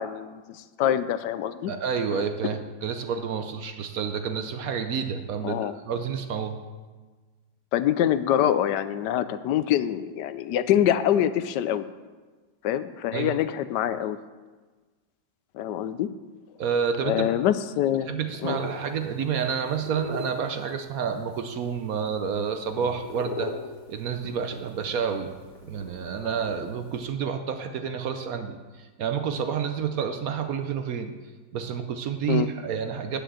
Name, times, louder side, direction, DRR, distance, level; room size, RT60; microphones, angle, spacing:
voice 1, 0.0-1.7 2.1-2.2 5.4-5.7 7.7-11.8 12.6-14.2 15.5-16.1 17.0-18.1 18.4-18.6 32.3-32.5, left 11 dB, 75° left, 13 dB, 1.1 m, -25 dB
voice 2, 1.7-6.6 13.1-13.3 16.6-17.3 18.1-23.5 23.9-25.3 25.6-31.1 31.5-33.2, right 7 dB, 65° right, 7 dB, 1.0 m, -29 dB
sound 1, 18.3-27.1, left 3 dB, 25° left, 1.5 m, -41 dB
9.2 x 6.8 x 7.6 m, 1.3 s
omnidirectional pair, 1.9 m